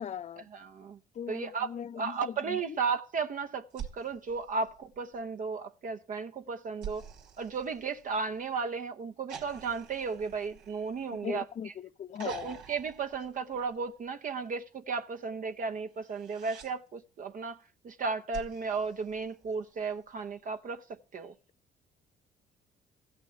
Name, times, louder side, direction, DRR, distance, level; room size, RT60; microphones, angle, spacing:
voice 1, 0.0-0.5 1.1-2.8 11.2-12.6, left 8 dB, 40° left, 0.6 m, -39 dB
voice 2, 0.5-1.0 1.3-1.7 2.0-7.0 7.4-11.4 12.3-17.6 17.8-20.8 21.1-21.3, right 5 dB, 50° right, 0.9 m, -34 dB
sound 1, 3.7-5.3 6.8-8.5 9.3-11.6 12.1-14.0 15.9-16.7 18.3-19.8 21.3-21.4, right 8 dB, 85° right, 2.5 m, -47 dB
15.0 x 6.1 x 8.0 m
supercardioid pair, 70°, 17 cm